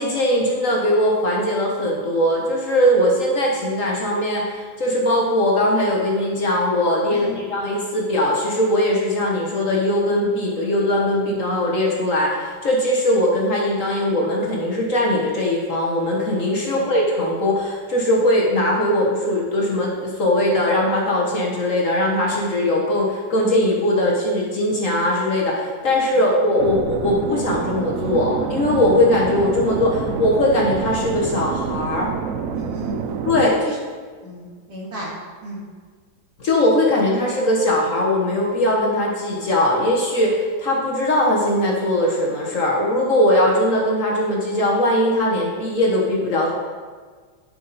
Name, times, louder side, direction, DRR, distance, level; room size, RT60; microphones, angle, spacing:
voice 1, 0.0-32.1 33.2-33.5 36.4-46.5, left 1 dB, 50° left, -2 dB, 1.4 m, -20 dB
voice 2, 7.1-7.4 16.6-16.8 32.5-33.0 33.4-33.8 34.2-35.1 35.4-35.6, right 2 dB, 55° right, -4 dB, 2.5 m, -31 dB
sound 1, 26.6-33.5, right 6 dB, 75° right, 0.7 m, -27 dB
10.5 x 5.7 x 4.1 m, 1.5 s
omnidirectional pair, 1.9 m